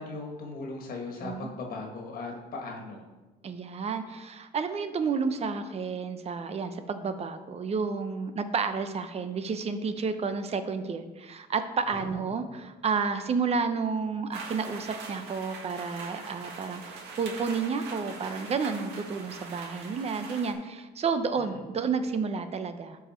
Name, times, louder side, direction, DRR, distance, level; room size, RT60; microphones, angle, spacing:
voice 1, 0.0-3.0 11.9-12.3 21.4-21.6, left 3 dB, 60° left, 1 dB, 1.7 m, -38 dB
voice 2, 1.1-1.5 3.4-23.0, right 5 dB, 40° right, 9 dB, 0.8 m, -31 dB
sound 1, 14.3-20.5, right 4 dB, 80° right, 1.9 m, -42 dB
12.0 x 4.9 x 4.5 m, 1.2 s
cardioid pair, 110°, 17 cm